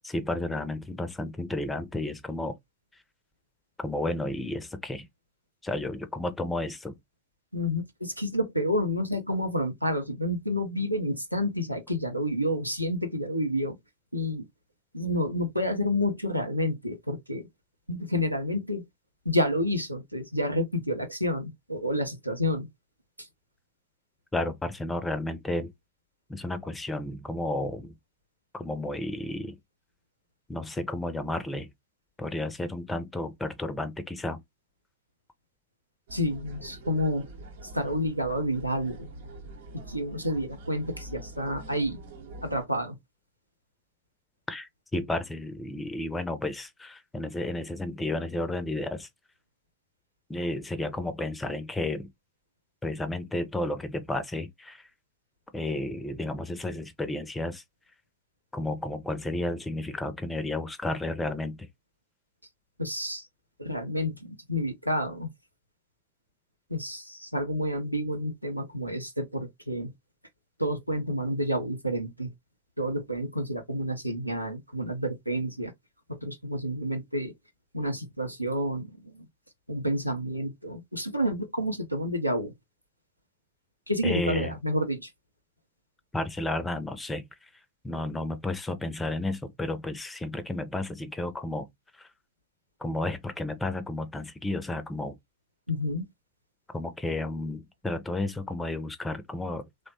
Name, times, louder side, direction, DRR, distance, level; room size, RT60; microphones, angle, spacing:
voice 1, 0.0-2.5 3.8-5.1 5.6-6.9 24.3-25.7 26.3-27.9 28.5-29.6 30.5-31.7 32.2-34.4 44.5-49.1 50.3-52.1 52.8-54.8 55.5-57.6 58.5-61.6 84.0-84.6 86.1-87.2 87.8-91.7 92.0-92.1 92.8-95.2 96.7-99.6, left 2 dB, 10° left, 0.5 m, -32 dB
voice 2, 7.5-13.8 14.1-14.5 14.9-17.5 17.9-18.8 19.3-22.7 23.2-23.3 36.1-37.3 37.7-39.1 39.7-42.0 42.4-43.0 62.8-63.3 63.6-65.3 66.7-69.9 70.6-72.3 72.8-75.7 76.1-77.3 77.7-79.3 79.7-82.5 83.9-85.1 95.7-96.1, equal, 90° right, 0.5 m, -29 dB
sound 1, 36.1-42.7, right 2 dB, 60° right, 0.8 m, -45 dB
3.0 x 2.1 x 2.6 m
figure-of-eight pair, 90°, 0 cm